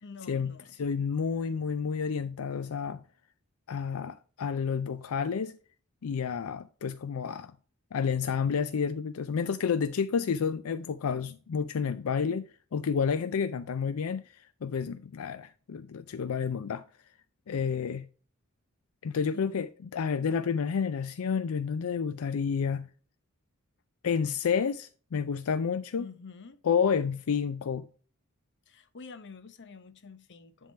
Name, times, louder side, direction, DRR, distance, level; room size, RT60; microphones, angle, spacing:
voice 1, 0.0-0.8 19.3-19.6 26.0-26.6 28.7-30.7, left 4 dB, 55° left, 0.8 m, -47 dB
voice 2, 0.8-3.0 3.7-5.6 6.0-7.5 7.9-16.8 17.5-18.1 19.0-19.7 19.9-22.9 24.0-26.1 26.6-27.8, left 6 dB, 80° left, 0.4 m, -30 dB
10.5 x 3.7 x 4.4 m
head